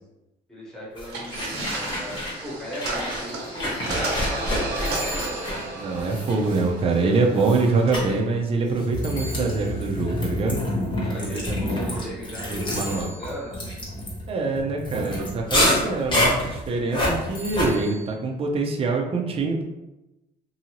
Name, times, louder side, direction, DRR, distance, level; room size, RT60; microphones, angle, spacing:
voice 1, 0.5-5.6 5.8-6.3 11.0-13.5, equal, 5° left, -6 dB, 1.2 m, -38 dB
sound 1, 1.0-2.4 2.7-7.0 7.4-7.6 7.9-8.1 8.8-17.7, left 1 dB, 30° left, 1.1 m, -27 dB
sound 2, 1.1-8.2, right 2 dB, 75° right, 0.8 m, -33 dB
sound 3, 1.6-2.6 4.8-6.1 9.0-10.1 12.6-13.6 17.3-18.1, right 1 dB, 75° left, 0.9 m, -40 dB
voice 2, 5.7-10.6 11.2-13.1 14.3-19.6, right 3 dB, 35° right, 1 dB, 0.5 m, -25 dB
2.7 x 2.7 x 2.9 m, 0.99 s
cardioid pair, 110°, 17 cm